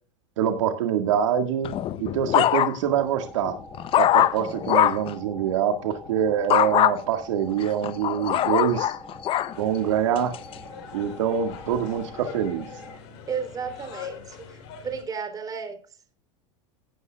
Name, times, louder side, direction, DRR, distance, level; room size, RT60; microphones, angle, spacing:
voice 1, 0.4-1.7 2.0-3.6 4.0-8.9 9.6-10.4 10.9-12.7, right 8 dB, 80° right, 1.9 m, -25 dB
sound 1, 1.6-3.0 3.5-5.1 6.5-6.9 7.6-9.5 10.2-10.5, left 13 dB, 35° left, 0.7 m, -22 dB
sound 2, 2.8-12.9, left 1 dB, 5° right, 6.2 m, -44 dB
sound 3, 9.5-15.0, left 7 dB, 60° left, 4.4 m, -43 dB
voice 2, 13.3-15.8, right 6 dB, 25° right, 3.4 m, -33 dB
17.0 x 9.6 x 2.4 m
supercardioid pair, 115°, 15 cm